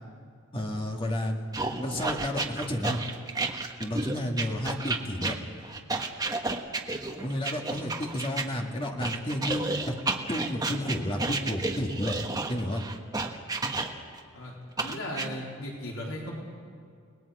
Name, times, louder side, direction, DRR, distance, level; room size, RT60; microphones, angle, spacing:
voice 1, 0.5-3.0 3.8-5.4 7.2-9.9 10.3-12.1 12.5-12.8, equal, 25° left, 1 dB, 2.0 m, -31 dB
sound 1, 1.5-8.5 9.0-14.2 14.8-15.3, right 3 dB, 20° right, 1.3 m, -31 dB
voice 2, 14.8-16.3, left 1 dB, 75° left, -4 dB, 4.0 m, -36 dB
30.0 x 19.5 x 5.0 m, 2.3 s
head